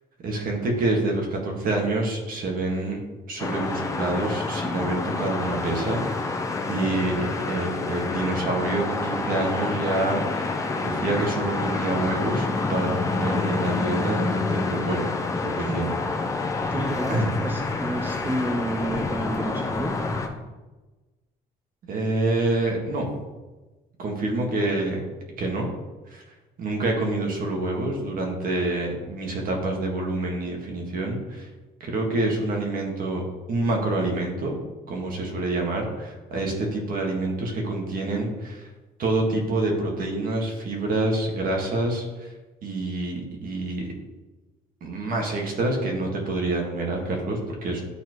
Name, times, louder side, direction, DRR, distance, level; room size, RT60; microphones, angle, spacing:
voice 1, 0.2-3.0 3.3-15.1 15.3-15.9 17.1-17.3 21.9-23.1 24.0-25.0 25.4-25.7 26.1-26.2 26.6-31.5 31.8-33.2 33.5-34.6 34.9-38.7 39.0-42.3 42.6-43.9 44.8-47.8, right 2 dB, 55° right, 1 dB, 1.9 m, -27 dB
sound 1, 3.4-20.3, left 3 dB, 20° left, 0.8 m, -28 dB
voice 2, 16.7-20.0, right 1 dB, 10° right, 2 dB, 0.7 m, -30 dB
11.5 x 4.3 x 3.1 m, 1.2 s
cardioid pair, 110°, 17 cm